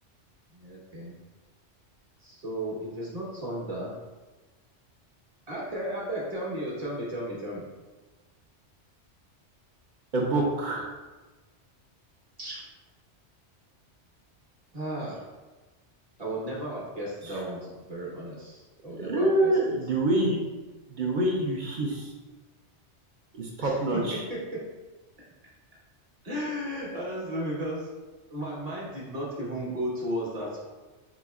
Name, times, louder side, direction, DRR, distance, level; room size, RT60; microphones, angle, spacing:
voice 1, 0.5-1.1 2.2-3.9 5.5-7.6 12.4-12.6 14.7-15.2 16.2-19.6 23.6-23.7 24.3-24.6 26.2-27.9 28.3-30.6, right 1 dB, 35° right, -5 dB, 1.0 m, -34 dB
voice 2, 10.1-10.9 17.2-17.4 19.0-20.4 20.9-22.1 23.3-24.2, right 1 dB, 50° right, -2 dB, 0.6 m, -26 dB
5.0 x 2.9 x 2.4 m, 1.2 s
omnidirectional pair, 1.2 m